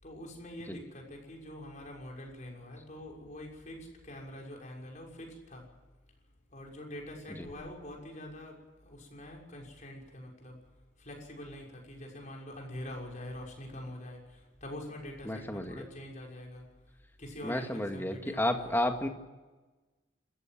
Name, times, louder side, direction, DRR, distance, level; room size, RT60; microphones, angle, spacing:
voice 1, 0.0-5.7 6.5-10.6 11.0-16.7 17.2-18.7, left 1 dB, 40° left, 0 dB, 6.3 m, -45 dB
voice 2, 15.3-15.8 17.4-19.1, left 1 dB, 10° left, 5 dB, 2.0 m, -32 dB
27.0 x 15.0 x 7.6 m, 1.2 s
head